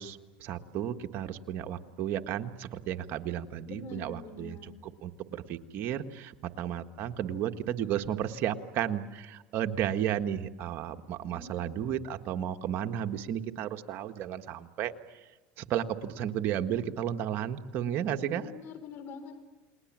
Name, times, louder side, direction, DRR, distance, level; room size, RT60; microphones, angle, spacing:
voice 1, 0.0-15.2 15.6-18.4, right 10 dB, 55° right, 7 dB, 1.5 m, -33 dB
voice 2, 3.7-4.8 11.3-11.7 18.1-19.4, left 3 dB, 55° left, 9 dB, 4.6 m, -44 dB
30.0 x 21.0 x 7.5 m, 1.1 s
supercardioid pair, 110°, 4 cm